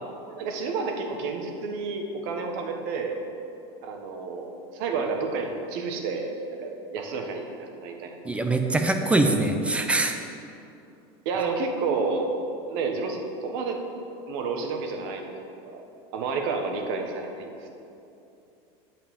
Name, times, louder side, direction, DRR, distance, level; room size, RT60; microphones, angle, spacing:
voice 1, 0.3-3.2 3.8-8.2 11.2-12.3 12.7-13.8 14.3-15.3 15.6-15.8 16.1-17.7, right 4 dB, 65° right, 3 dB, 1.3 m, -30 dB
voice 2, 8.2-10.2, right 2 dB, 10° right, 5 dB, 0.6 m, -23 dB
8.8 x 5.5 x 7.1 m, 2.8 s
supercardioid pair, 145°, 14 cm